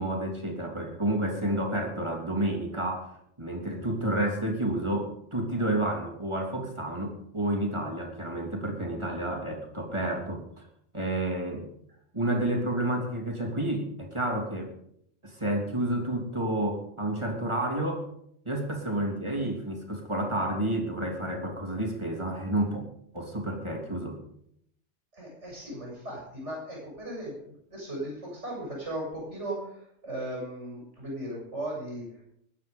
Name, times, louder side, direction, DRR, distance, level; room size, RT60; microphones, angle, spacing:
voice 1, 0.0-10.6 10.9-11.7 12.1-14.7 15.2-18.1 18.4-22.8 23.1-24.2, right 1 dB, 25° right, 1 dB, 3.3 m, -30 dB
voice 2, 25.1-32.2, right 1 dB, 70° right, -3 dB, 7.7 m, -37 dB
21.0 x 9.3 x 5.4 m, 0.72 s
omnidirectional pair, 1.3 m